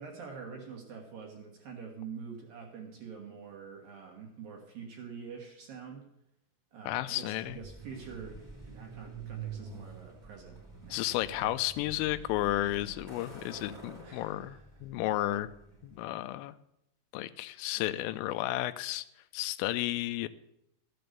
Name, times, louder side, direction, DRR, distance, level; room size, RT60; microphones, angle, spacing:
voice 1, 0.0-6.1 6.7-11.5 14.0-14.7, right 6 dB, 60° right, 1 dB, 2.6 m, -46 dB
voice 2, 6.9-7.6 10.9-15.5 15.8-16.5 17.1-19.1 19.3-20.3, left 15 dB, 85° left, 13 dB, 3.2 m, -32 dB
Truck, 7.4-16.1, right 5 dB, 10° right, 1.2 m, -47 dB
14.0 x 7.8 x 6.7 m, 0.80 s
omnidirectional pair, 5.7 m